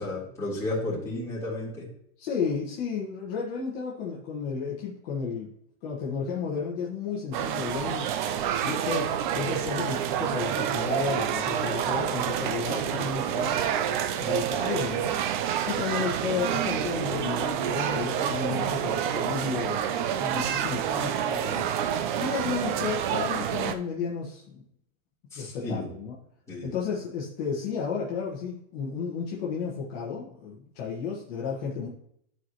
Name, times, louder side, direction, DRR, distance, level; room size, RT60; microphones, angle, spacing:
voice 1, 0.0-1.9 25.3-25.9 26.5-26.7, left 2 dB, 5° left, -9 dB, 3.5 m, -32 dB
voice 2, 2.2-5.5 5.8-8.1 8.6-13.7 14.2-15.2 15.7-21.7 22.2-24.6 25.4-26.2 26.6-31.9, left 6 dB, 45° left, -4 dB, 1.6 m, -33 dB
sound 1, 7.3-23.8, right 9 dB, 40° right, 0.5 m, -28 dB
12.0 x 4.8 x 3.0 m, 0.71 s
supercardioid pair, 160°, 41 cm